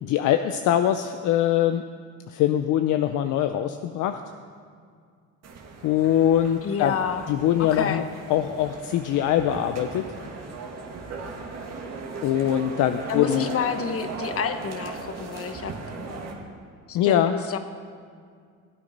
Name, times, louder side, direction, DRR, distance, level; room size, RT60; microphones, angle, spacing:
voice 1, 0.0-1.8 2.3-4.2 5.8-7.0 7.3-10.1 12.2-13.5 16.9-17.4, left 11 dB, 70° left, 8 dB, 0.6 m, -23 dB
sound 1, 5.4-16.3, right 4 dB, 50° right, 2.1 m, -38 dB
voice 2, 6.6-7.3 7.6-8.0 13.1-15.7 16.9-17.6, left 6 dB, 45° left, 9 dB, 1.1 m, -29 dB
16.5 x 8.8 x 5.3 m, 2.1 s
cardioid pair, 100°, 32 cm